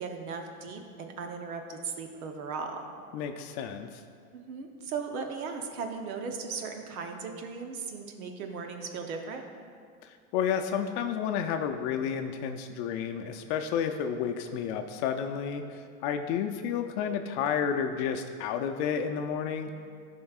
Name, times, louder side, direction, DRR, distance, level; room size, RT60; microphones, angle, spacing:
voice 1, 0.0-2.9 4.3-9.4, right 5 dB, 90° right, 4 dB, 0.9 m, -37 dB
voice 2, 3.1-4.0 10.0-19.7, left 7 dB, 55° left, 6 dB, 0.5 m, -31 dB
13.0 x 5.2 x 2.4 m, 2.2 s
supercardioid pair, 120°, 42 cm